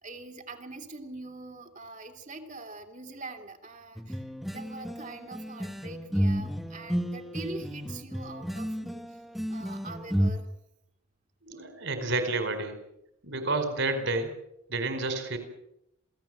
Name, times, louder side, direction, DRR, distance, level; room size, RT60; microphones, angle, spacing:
voice 1, 0.0-9.2 9.5-10.5, right 2 dB, 35° right, 5 dB, 2.7 m, -43 dB
sound 1, 4.0-10.3, equal, ahead, 1.3 m, -31 dB
voice 2, 11.4-12.7 13.2-14.3 14.7-15.4, right 2 dB, 55° right, 8 dB, 4.8 m, -30 dB
27.5 x 17.5 x 7.9 m, 0.82 s
head